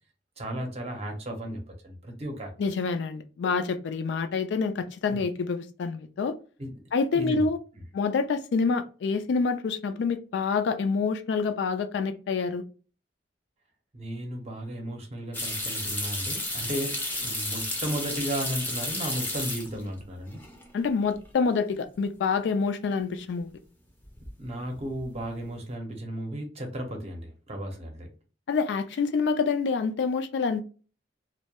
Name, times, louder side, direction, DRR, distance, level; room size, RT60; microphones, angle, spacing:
voice 1, 0.4-2.5 5.1-5.2 6.6-6.7 7.1-7.5 7.8-7.9 13.9-20.4 24.4-28.1, equal, 35° right, 0.6 m, -34 dB
voice 2, 2.6-6.3 6.9-7.6 7.9-12.6 20.7-23.5 28.5-30.6, left 4 dB, 70° left, 0.3 m, -27 dB
sound 1, 15.3-20.0 20.3-20.9 21.2-21.3 24.0-24.4 24.7-25.2, left 1 dB, 10° left, 0.5 m, -32 dB
2.2 x 2.1 x 2.8 m
head